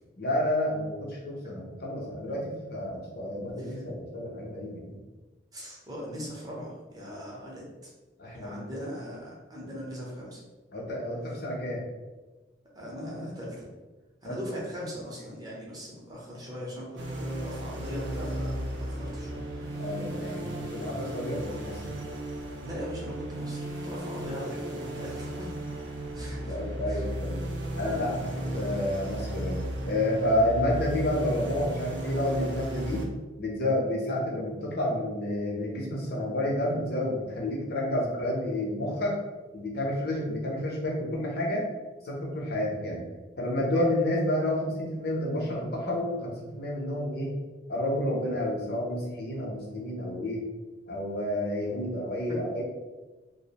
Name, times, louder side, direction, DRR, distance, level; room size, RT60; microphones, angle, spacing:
voice 1, 0.2-5.0 7.1-7.2 8.2-8.8 9.6-9.7 10.7-11.8 14.3-14.4 19.8-20.4 20.7-22.0 26.5-27.4 27.8-29.6 29.8-33.0 33.4-39.2 39.5-41.7 42.0-43.0 43.4-47.3 47.7-50.4 50.9-52.6, left 1 dB, 55° left, -3 dB, 0.7 m, -30 dB
voice 2, 3.5-3.8 5.5-7.9 8.2-10.4 12.7-13.7 14.2-19.4 22.6-25.5 26.1-27.1 27.9-28.1 52.3-52.4, equal, 20° right, -5 dB, 0.6 m, -40 dB
sound 1, 17.0-33.1, right 1 dB, 65° right, 0.4 m, -35 dB
2.4 x 2.0 x 2.8 m, 1.2 s
head